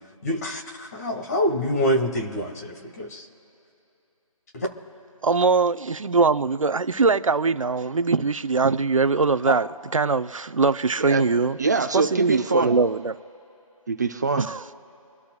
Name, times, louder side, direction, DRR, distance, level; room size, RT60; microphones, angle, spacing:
voice 1, 0.2-3.3 4.5-4.7, equal, 30° left, 2 dB, 1.9 m, -26 dB
voice 2, 5.2-9.7 9.9-11.6 11.9-13.2 14.4-14.6, right 4 dB, 65° right, 11 dB, 0.8 m, -22 dB
voice 3, 11.6-12.8 13.9-14.5, right 4 dB, 30° right, 6 dB, 0.7 m, -24 dB
26.0 x 13.0 x 2.4 m, 2.8 s
figure-of-eight pair, 165°, 18 cm